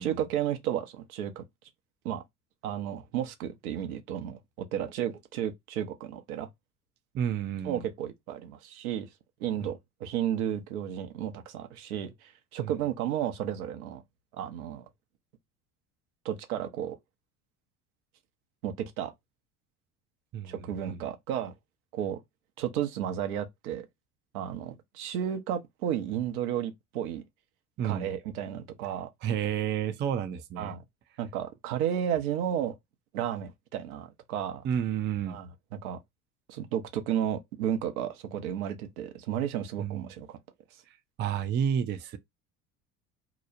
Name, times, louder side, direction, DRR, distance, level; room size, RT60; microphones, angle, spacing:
voice 1, 0.0-1.4 2.0-2.2 2.6-4.4 4.7-6.5 7.6-9.1 9.4-14.0 14.3-14.9 16.2-17.0 18.6-19.1 20.4-21.5 21.9-22.2 22.6-23.9 24.3-27.2 27.8-29.1 30.6-30.8 31.2-32.7 33.1-34.6 35.3-36.0 36.5-40.4, right 10 dB, 80° right, 0.7 m, -33 dB
voice 2, 7.1-7.8 9.6-9.7 12.6-12.7 20.3-21.0 27.8-28.1 29.2-30.7 34.6-35.4 39.8-40.1 41.2-42.2, right 8 dB, 25° right, 0.4 m, -31 dB
2.9 x 2.0 x 2.4 m
hypercardioid pair, 70°, 43 cm